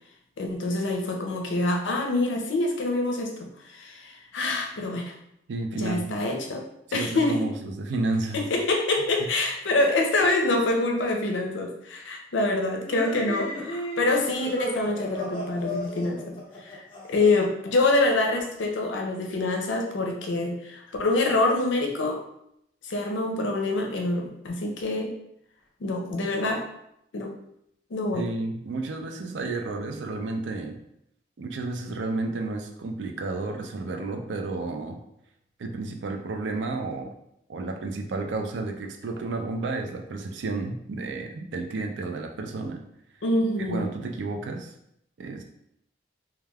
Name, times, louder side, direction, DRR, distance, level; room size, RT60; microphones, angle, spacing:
voice 1, 0.4-5.1 5.7-6.6 6.9-7.5 8.3-22.2 22.8-25.1 25.8-26.6 27.1-27.3 27.9-28.3 43.2-43.8, left 2 dB, 80° left, 2 dB, 0.5 m, -26 dB
voice 2, 5.5-6.2 6.9-8.4 28.1-30.8 31.4-35.0 35.6-37.1 37.5-42.8 43.7-44.7 45.2-45.4, right 3 dB, 70° right, 4 dB, 0.4 m, -31 dB
sound 1, 12.8-17.5, left 1 dB, 30° left, 0.5 m, -34 dB
3.2 x 2.3 x 2.2 m, 0.77 s
head